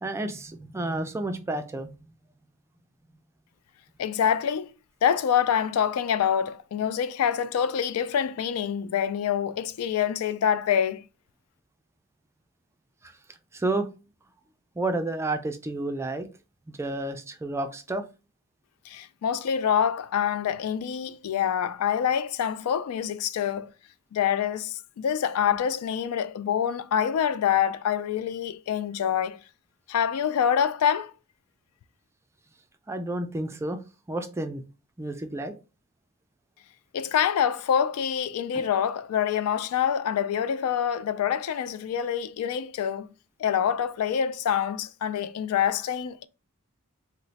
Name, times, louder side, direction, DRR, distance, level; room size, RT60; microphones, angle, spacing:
voice 1, 0.0-1.9 13.0-13.1 13.5-13.9 14.8-16.3 16.7-18.0 32.9-33.8 34.1-34.6 35.0-35.5 38.5-38.6, right 2 dB, 10° right, 0.3 m, -30 dB
voice 2, 4.0-4.7 5.0-11.0 18.9-23.7 24.1-29.4 29.9-31.1 36.9-43.1 43.4-46.2, left 8 dB, 85° left, 0.3 m, -26 dB
3.0 x 2.0 x 3.9 m
head